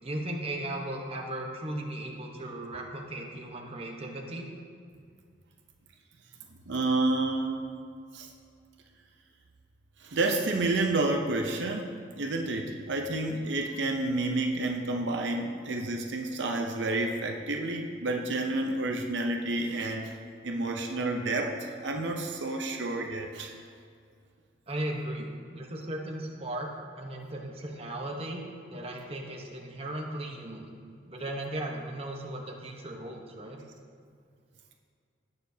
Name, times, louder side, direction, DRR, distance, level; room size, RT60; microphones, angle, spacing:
voice 1, 0.0-4.5 24.7-26.7 27.0-30.7 31.0-33.6, right 1 dB, 30° right, 0 dB, 1.0 m, -37 dB
voice 2, 6.7-7.7 8.1-8.3 10.0-20.2 20.4-23.6, right 2 dB, 70° right, 2 dB, 0.7 m, -30 dB
17.0 x 6.8 x 2.8 m, 2.2 s
head